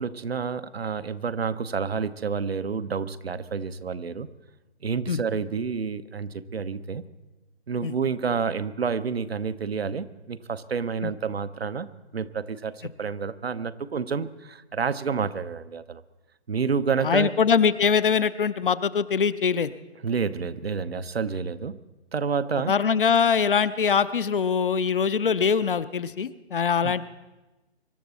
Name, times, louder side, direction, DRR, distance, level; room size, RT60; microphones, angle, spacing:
voice 1, 0.0-4.3 4.8-7.0 7.7-16.0 16.5-17.3 20.0-21.8 22.1-22.7 26.8-26.9, right 5 dB, 65° right, 13 dB, 0.9 m, -29 dB
voice 2, 17.0-19.7 22.7-27.0, left 6 dB, 55° left, 14 dB, 0.7 m, -23 dB
24.5 x 12.0 x 4.2 m, 1.1 s
figure-of-eight pair, 140°, 33 cm